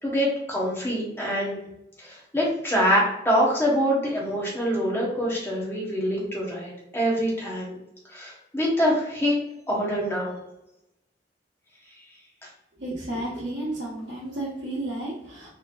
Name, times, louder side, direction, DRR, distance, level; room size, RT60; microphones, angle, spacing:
voice 1, 0.0-1.6 2.0-7.8 8.1-9.4 9.7-10.4, equal, 15° left, -5 dB, 1.0 m, -25 dB
voice 2, 12.8-15.5, right 1 dB, 70° right, -9 dB, 1.0 m, -32 dB
4.0 x 3.0 x 2.4 m, 0.85 s
head